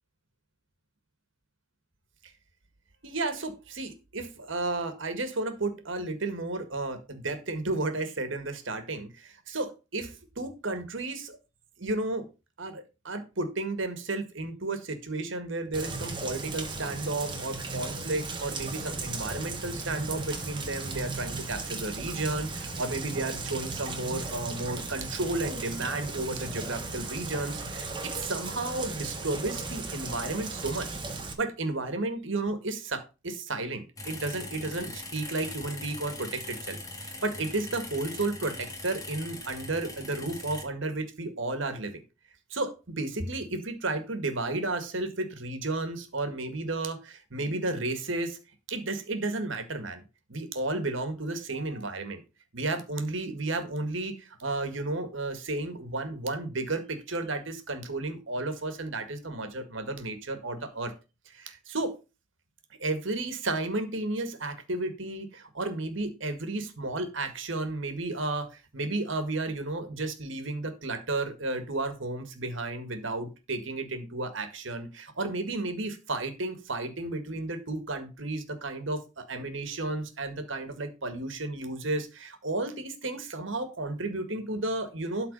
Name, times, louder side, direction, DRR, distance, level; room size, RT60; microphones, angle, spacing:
voice 1, 3.0-11.4 11.8-12.3 12.6-30.9 31.4-42.0 42.5-48.4 48.7-50.0 50.3-52.2 52.5-60.9 61.2-61.9 62.8-85.3, right 2 dB, 70° right, 8 dB, 1.8 m, -33 dB
Rain, 15.7-31.3, right 3 dB, 25° right, 1.5 m, -36 dB
sound 1, 34.0-40.6, left 2 dB, 15° left, 1.9 m, -41 dB
12.5 x 4.2 x 5.4 m, 0.29 s
head